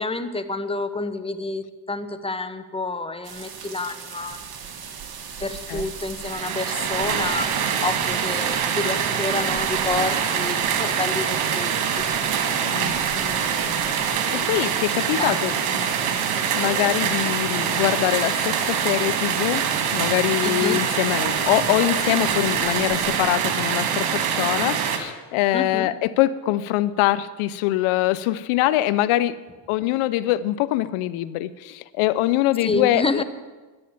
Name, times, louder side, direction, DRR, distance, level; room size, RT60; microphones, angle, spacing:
voice 1, 0.0-4.4 5.4-12.1 13.1-14.1 15.2-16.2 20.4-20.8 25.5-25.9 32.6-33.2, left 3 dB, 10° left, 10 dB, 1.2 m, -29 dB
sound 1, 3.2-23.2, right 6 dB, 45° right, 2.1 m, -37 dB
sound 2, 6.2-25.0, right 7 dB, 80° right, 2.1 m, -24 dB
voice 2, 12.6-12.9 14.3-15.5 16.5-19.7 19.9-29.4 29.7-33.2, left 15 dB, 85° left, 16 dB, 0.7 m, -23 dB
11.5 x 9.8 x 8.7 m, 1.3 s
supercardioid pair, 75°, 49 cm